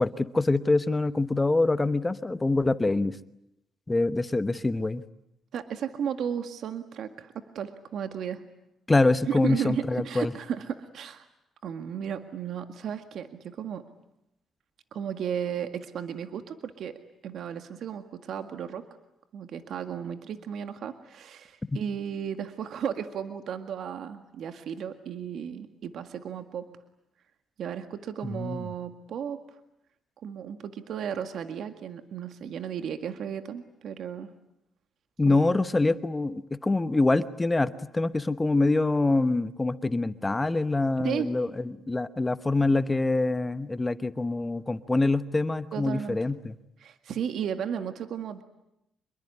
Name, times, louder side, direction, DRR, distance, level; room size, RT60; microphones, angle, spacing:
voice 1, 0.0-3.2 3.9-5.0 8.9-10.3 28.2-28.7 35.2-46.6, left 2 dB, 20° left, 13 dB, 1.1 m, -25 dB
voice 2, 5.5-8.4 9.3-11.3 11.6-13.8 14.9-17.0 17.2-18.9 19.3-26.7 27.6-29.4 30.2-34.3 35.3-35.5 41.0-41.3 45.7-46.2 46.8-48.4, right 8 dB, 70° right, 8 dB, 1.8 m, -34 dB
26.0 x 22.5 x 9.8 m, 0.84 s
cardioid pair, 90°, 0 cm